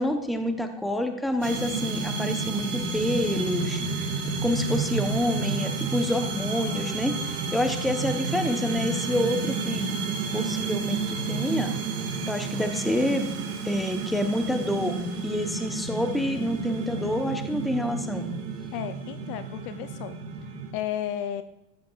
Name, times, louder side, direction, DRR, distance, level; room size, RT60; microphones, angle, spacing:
voice 1, 0.0-10.0 10.3-11.8 12.3-13.3 13.6-18.3, left 1 dB, ahead, 6 dB, 0.9 m, -28 dB
sound 1, 1.4-20.7, right 4 dB, 70° right, 2.1 m, -31 dB
voice 2, 18.7-20.2 20.7-21.4, left 10 dB, 50° left, 11 dB, 0.6 m, -33 dB
13.5 x 8.9 x 2.4 m, 0.86 s
hypercardioid pair, 95°, 48 cm